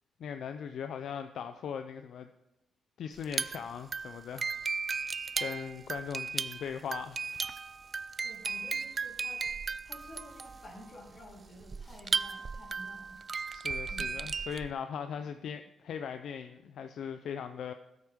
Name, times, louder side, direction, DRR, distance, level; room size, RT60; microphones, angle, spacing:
voice 1, 0.2-2.3 3.0-4.5 5.4-7.2 13.5-17.7, left 7 dB, 70° left, 8 dB, 0.5 m, -39 dB
sound 1, 3.2-14.7, right 5 dB, 35° right, 0.3 m, -36 dB
voice 2, 8.2-9.4 9.8-13.2 13.6-14.2, left 1 dB, 40° left, -2 dB, 3.8 m, -51 dB
14.0 x 8.0 x 3.6 m, 0.89 s
cardioid pair, 100°, 0 cm